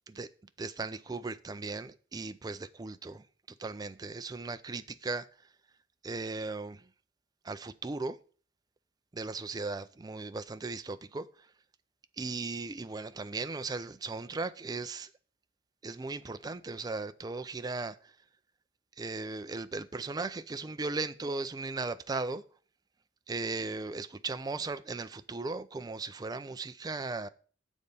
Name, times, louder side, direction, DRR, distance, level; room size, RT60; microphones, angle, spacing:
voice 1, 0.6-3.2 3.6-5.3 6.0-6.9 7.4-8.2 9.1-11.3 12.2-15.1 15.8-18.1 19.0-22.4 23.3-27.3, right 3 dB, 20° right, 0.3 m, -37 dB
7.3 x 4.0 x 6.6 m
head